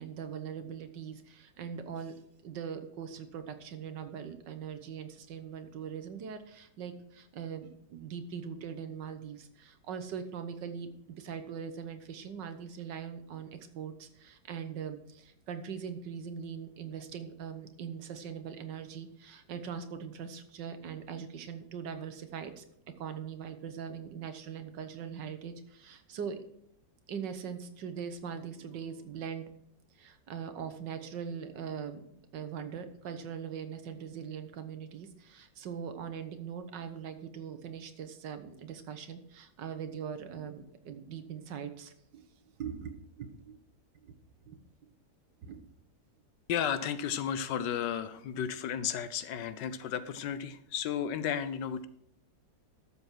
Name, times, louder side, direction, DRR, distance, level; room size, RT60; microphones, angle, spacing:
voice 1, 0.0-2.1 2.4-22.7 23.0-26.4 27.1-29.5 30.0-32.0 32.3-42.3 42.6-43.6 43.9-44.2 44.5-44.6 45.4-45.7, right 7 dB, 70° right, 9 dB, 1.6 m, -41 dB
voice 2, 46.5-51.9, left 8 dB, 75° left, 13 dB, 1.3 m, -33 dB
12.0 x 7.3 x 4.5 m, 0.73 s
omnidirectional pair, 2.0 m